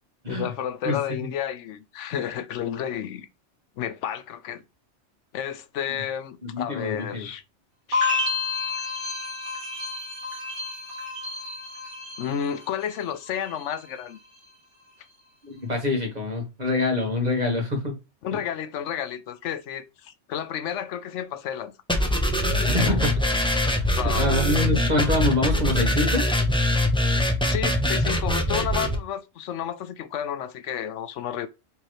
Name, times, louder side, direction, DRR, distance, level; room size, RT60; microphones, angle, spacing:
voice 1, 0.3-3.3 3.8-4.6 5.3-7.4 7.9-8.4 12.2-14.2 18.2-21.7 22.8-23.1 24.0-24.7 27.4-31.5, left 9 dB, 85° left, 0.9 m, -31 dB
voice 2, 6.4-7.3 15.4-18.0 18.3-18.4 22.7-23.1 23.8-26.2, left 2 dB, 35° right, 1.6 m, -25 dB
sound 1, 7.9-13.0 13.2-13.9, left 3 dB, 80° right, 1.9 m, -30 dB
sound 2, 21.9-28.9, left 1 dB, 5° left, 0.7 m, -23 dB
4.6 x 3.7 x 3.0 m
omnidirectional pair, 1.2 m